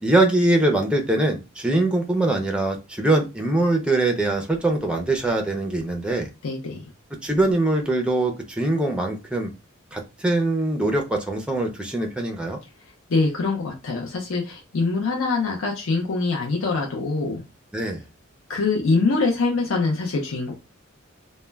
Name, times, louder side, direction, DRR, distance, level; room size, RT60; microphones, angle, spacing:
voice 1, 0.0-6.3 7.2-9.5 9.9-12.6 17.7-18.0, right 2 dB, 5° right, 3 dB, 0.4 m, -22 dB
voice 2, 6.4-6.8 13.1-17.4 18.5-20.5, left 3 dB, 75° left, 0 dB, 0.5 m, -24 dB
2.1 x 2.1 x 3.2 m, 0.26 s
head